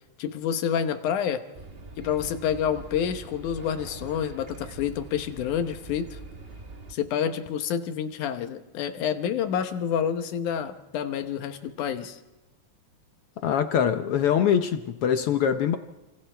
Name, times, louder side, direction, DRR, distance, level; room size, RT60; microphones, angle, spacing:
voice 1, 0.2-1.5 2.0-6.2 6.9-12.2, left 8 dB, 90° left, 9 dB, 2.6 m, -28 dB
sound 1, 1.5-6.9, right 3 dB, 45° right, 0.7 m, -43 dB
voice 2, 13.4-15.8, left 8 dB, 75° left, 8 dB, 1.3 m, -23 dB
29.5 x 26.5 x 3.4 m, 1.1 s
omnidirectional pair, 3.4 m